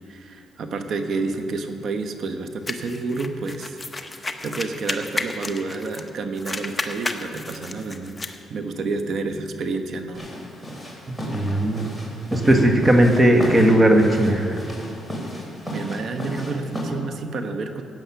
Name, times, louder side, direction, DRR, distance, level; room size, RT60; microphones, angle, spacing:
voice 1, 0.1-3.8 4.1-8.2 8.5-10.3 15.7-17.8, right 3 dB, 60° right, 7 dB, 1.1 m, -29 dB
sound 1, 2.7-6.1 6.4-8.4, left 2 dB, 20° left, 0.9 m, -32 dB
sound 2, 10.1-16.9, equal, 5° right, 3.8 m, -34 dB
voice 2, 11.3-11.9 12.3-14.6, right 1 dB, 20° right, 3 dB, 1.6 m, -17 dB
15.0 x 8.9 x 5.9 m, 2.7 s
cardioid pair, 90°, 0 cm